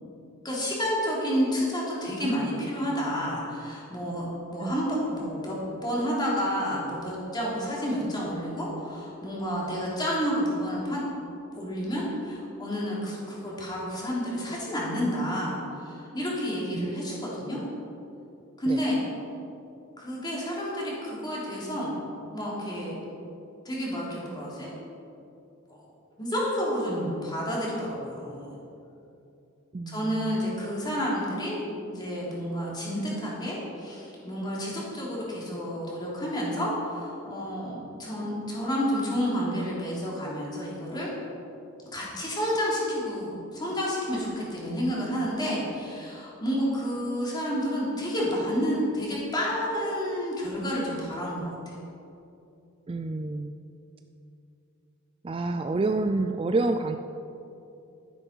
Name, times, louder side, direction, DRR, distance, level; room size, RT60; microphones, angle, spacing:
voice 1, 0.4-11.0 11.5-17.6 18.6-19.0 20.0-22.0 22.3-22.9 23.6-24.7 25.7-25.8 26.2-28.5 29.9-41.1 41.9-51.7, equal, 20° left, -5 dB, 3.2 m, -30 dB
voice 2, 29.7-30.4 52.9-53.5 55.2-57.0, right 2 dB, 25° right, 7 dB, 0.3 m, -28 dB
12.0 x 10.0 x 5.6 m, 2.8 s
head